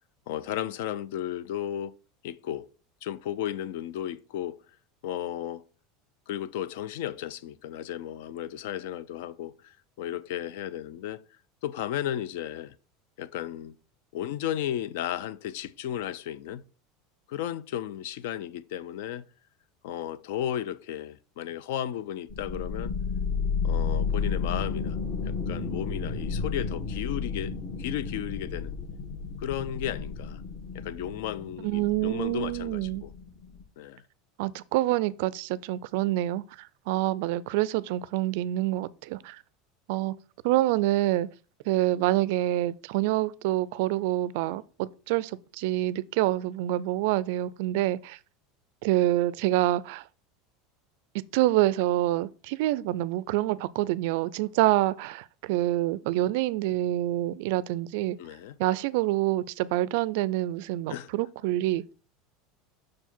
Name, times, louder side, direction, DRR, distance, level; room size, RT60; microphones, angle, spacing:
voice 1, 0.3-1.9 2.2-2.7 3.0-4.6 5.0-5.6 6.3-11.2 11.6-12.7 13.2-13.8 14.1-16.6 17.3-19.3 19.8-22.9 23.6-25.0 25.2-28.8 29.4-30.4 30.7-33.1 33.8-34.0 58.2-58.6 60.9-61.1, left 11 dB, 65° left, 0.4 m, -34 dB
sound 1, 22.3-33.6, left 5 dB, 45° left, 1.8 m, -32 dB
voice 2, 31.6-33.0 34.4-39.4 39.9-40.1 40.4-41.3 41.7-48.2 48.8-50.0 51.3-58.2 58.6-61.8, right 15 dB, 60° right, 0.3 m, -27 dB
6.1 x 4.6 x 4.4 m
supercardioid pair, 170°, 0 cm